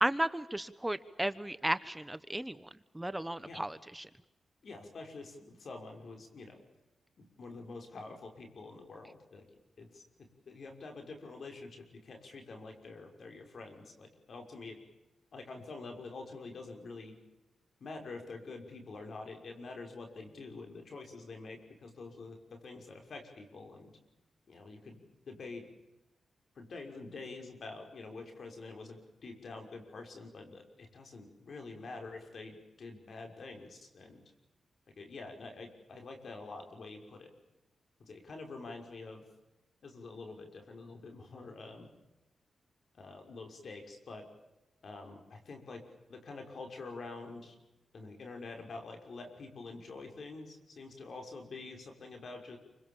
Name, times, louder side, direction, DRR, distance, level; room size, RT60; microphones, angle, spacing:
voice 1, 0.0-2.7 2.9-4.1, right 1 dB, 10° right, 14 dB, 1.0 m, -34 dB
voice 2, 4.6-6.6 7.2-9.4 9.8-14.8 15.3-17.2 17.8-23.9 24.5-25.7 26.6-34.2 34.9-37.3 38.0-39.2 39.8-41.9 43.0-44.3 44.8-45.8 46.1-47.6 47.9-52.6, left 3 dB, 60° left, 4 dB, 5.9 m, -47 dB
28.0 x 26.0 x 7.3 m, 0.98 s
cardioid pair, 75°, 0 cm